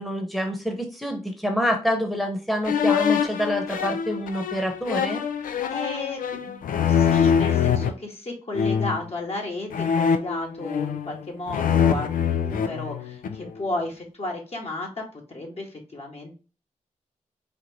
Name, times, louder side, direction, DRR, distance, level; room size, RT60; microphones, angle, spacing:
voice 1, 0.0-5.2, equal, ahead, 3 dB, 1.0 m, -27 dB
sound 1, 2.6-7.9 8.5-9.1 9.7-11.2 11.5-13.5, left 7 dB, 85° left, 0.4 m, -24 dB
voice 2, 5.5-16.4, left 2 dB, 50° left, -1 dB, 1.4 m, -33 dB
4.2 x 2.5 x 3.0 m, 0.34 s
cardioid pair, 45°, 14 cm